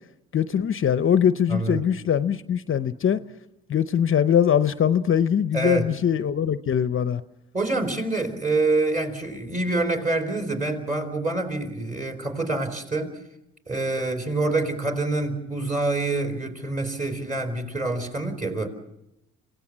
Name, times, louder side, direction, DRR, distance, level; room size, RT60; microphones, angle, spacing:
voice 1, 0.3-3.2 3.7-7.2, left 8 dB, 45° left, 13 dB, 0.7 m, -22 dB
voice 2, 1.5-1.9 5.5-5.9 7.5-13.2 13.7-18.7, right 2 dB, 25° right, 6 dB, 4.4 m, -26 dB
26.0 x 17.5 x 7.4 m, 0.88 s
cardioid pair, 90°, 30 cm